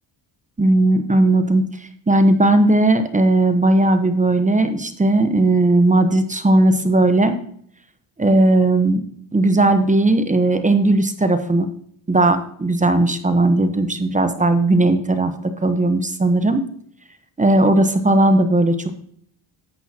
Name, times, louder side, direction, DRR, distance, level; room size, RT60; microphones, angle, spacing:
voice 1, 0.6-1.7 2.1-7.4 8.2-9.0 9.3-11.7 12.1-16.6 17.4-18.9, right 2 dB, 15° right, 9 dB, 0.9 m, -17 dB
10.5 x 8.2 x 2.9 m, 0.62 s
cardioid pair, 85°, 50 cm